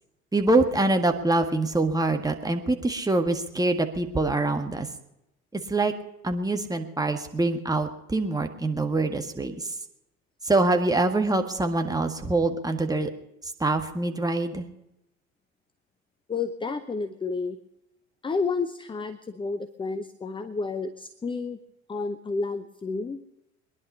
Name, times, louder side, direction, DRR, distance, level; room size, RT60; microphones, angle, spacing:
voice 1, 0.3-4.9 5.5-5.9 6.2-9.7 10.4-13.1 13.4-14.7, right 2 dB, 10° right, 5 dB, 1.7 m, -25 dB
voice 2, 16.3-17.6 18.2-21.6 21.9-23.2, left 4 dB, 10° left, 11 dB, 0.7 m, -30 dB
22.5 x 11.0 x 5.5 m, 0.87 s
figure-of-eight pair, 65°, 41 cm